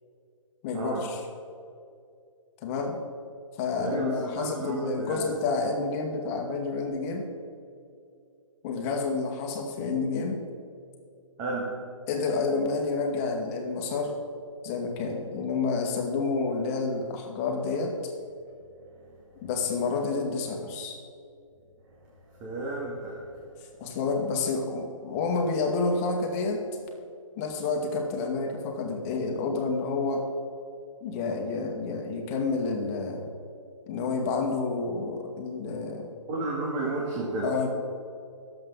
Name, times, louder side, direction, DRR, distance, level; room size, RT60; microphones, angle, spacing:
voice 1, 0.6-1.3 2.6-3.0 3.6-7.3 8.6-10.4 12.1-14.1 14.6-18.0 19.4-21.0 23.8-26.7 27.4-30.3 31.0-33.3 33.9-36.1 37.4-37.7, left 4 dB, 25° left, 2 dB, 1.9 m, -29 dB
voice 2, 3.8-5.2 11.4-11.7 22.3-23.2 36.3-37.5, right 2 dB, 25° right, -4 dB, 2.3 m, -32 dB
21.5 x 7.9 x 4.0 m, 2.5 s
hypercardioid pair, 145°, 17 cm